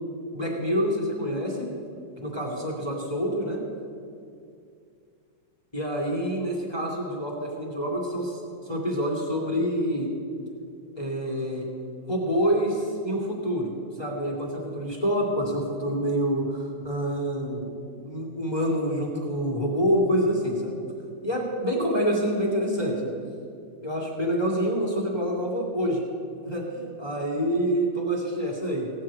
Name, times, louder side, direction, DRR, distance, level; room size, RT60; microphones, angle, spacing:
voice 1, 0.3-1.6 2.2-3.6 5.7-10.1 10.9-11.7 12.1-17.7 18.0-20.7 21.2-23.1 23.8-26.0 26.4-28.9, equal, 10° left, -1 dB, 1.7 m, -27 dB
16.5 x 6.5 x 8.6 m, 2.4 s
omnidirectional pair, 3.8 m